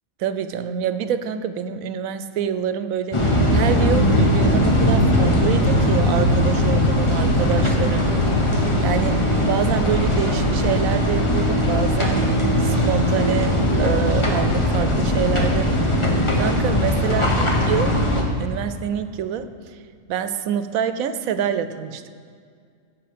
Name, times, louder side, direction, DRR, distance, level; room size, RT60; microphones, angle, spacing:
voice 1, 0.2-8.5 8.8-12.3 12.6-18.0 18.4-19.8 20.1-22.0, right 8 dB, 85° right, 11 dB, 1.1 m, -26 dB
sound 1, 3.1-18.2, left 1 dB, 25° left, 1.2 m, -19 dB
15.5 x 6.4 x 5.1 m, 2.2 s
omnidirectional pair, 1.4 m